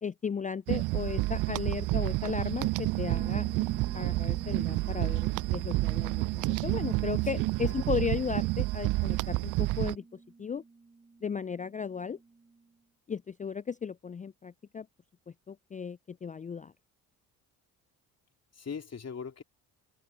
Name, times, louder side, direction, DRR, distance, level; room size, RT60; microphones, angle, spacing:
voice 1, 0.0-3.5 3.9-10.0 10.4-10.6 11.2-12.2 13.1-14.9 15.5-16.7, left 6 dB, 20° left, 0.5 m, -35 dB
sound 1, 0.7-10.0, right 20 dB, 45° right, 0.4 m, -29 dB
Bass guitar, 3.1-12.7, right 3 dB, 15° right, 1.4 m, -50 dB
voice 2, 6.7-7.7 18.5-19.4, left 6 dB, 35° left, 3.0 m, -42 dB
hypercardioid pair, 50°, 45 cm